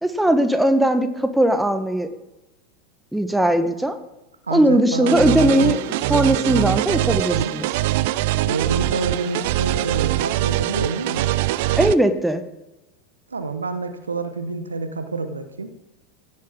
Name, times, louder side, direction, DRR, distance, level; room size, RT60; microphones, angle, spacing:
voice 1, 0.0-2.1 3.1-4.0 4.5-5.8 6.1-7.7 11.7-12.4, right 1 dB, 5° right, 8 dB, 1.0 m, -19 dB
voice 2, 4.5-5.8 7.3-7.5 8.4-11.3 13.3-15.7, right 3 dB, 80° right, 9 dB, 1.0 m, -28 dB
sound 1, 5.1-11.9, right 16 dB, 55° right, 0.4 m, -23 dB
16.5 x 7.8 x 3.6 m, 1.0 s
figure-of-eight pair, 85°, 0 cm